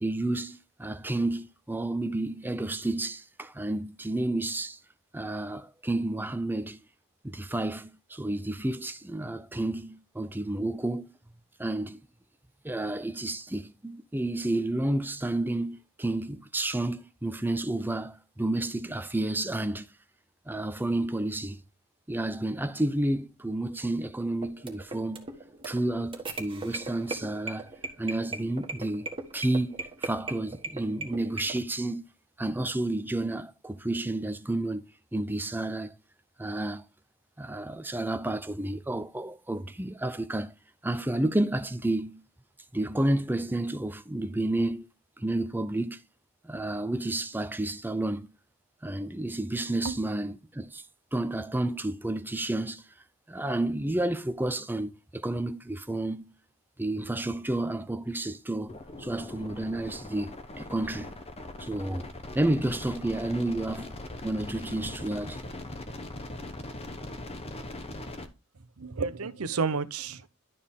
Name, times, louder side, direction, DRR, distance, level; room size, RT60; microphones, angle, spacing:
voice 1, 0.0-4.8 5.1-6.8 7.2-11.1 11.6-12.0 12.6-19.9 20.5-21.6 22.1-25.3 25.6-27.7 28.0-29.1 29.3-29.8 30.0-32.0 32.4-35.9 36.4-36.8 37.4-40.5 40.8-42.2 42.7-44.9 45.2-46.0 46.4-48.3 48.8-50.8 51.1-52.8 53.3-56.3 56.8-61.1 61.6-62.1 62.3-64.0 64.2-65.4, right 1 dB, 10° right, 0.6 m, -31 dB
sound 1, 24.3-31.6, right 3 dB, 25° right, 1.5 m, -38 dB
sound 2, 58.7-68.3, left 2 dB, 30° left, 1.0 m, -41 dB
voice 2, 68.8-70.3, right 4 dB, 80° right, 0.8 m, -31 dB
12.0 x 4.2 x 3.6 m
head